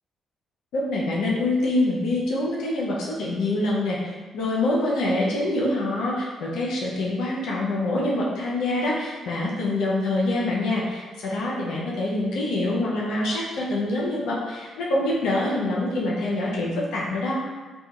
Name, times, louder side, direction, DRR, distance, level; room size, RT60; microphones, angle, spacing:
voice 1, 0.7-17.4, left 2 dB, 70° left, -5 dB, 0.5 m, -25 dB
2.6 x 2.3 x 2.3 m, 1.4 s
hypercardioid pair, 45°, 0 cm